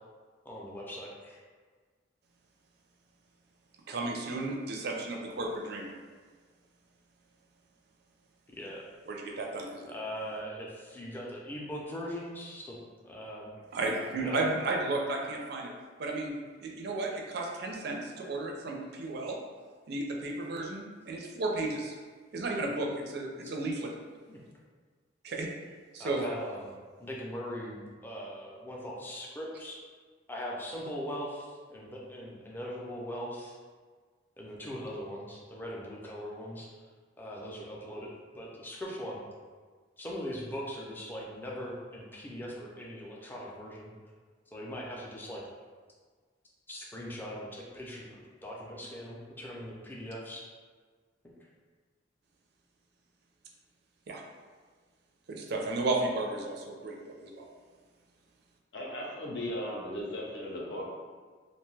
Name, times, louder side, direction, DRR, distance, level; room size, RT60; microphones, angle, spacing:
voice 1, 0.4-1.4 8.5-8.9 9.9-12.8 13.0-13.5 14.0-14.4 24.3-24.4 26.0-26.7 27.0-29.8 30.3-33.6 34.4-36.7 37.2-38.1 38.3-39.2 40.0-43.9 44.5-45.4 46.7-50.4, equal, 10° left, -4 dB, 0.4 m, -40 dB
voice 2, 3.9-5.9 9.1-9.9 13.7-15.7 16.0-16.3 16.6-19.4 19.9-22.0 22.3-23.9 25.2-25.5 25.9-26.2 54.1-54.2 55.3-57.5, right 2 dB, 60° right, 0 dB, 0.4 m, -33 dB
voice 3, 58.7-60.9, left 1 dB, 65° left, -3 dB, 0.6 m, -37 dB
2.6 x 2.2 x 3.1 m, 1.5 s
head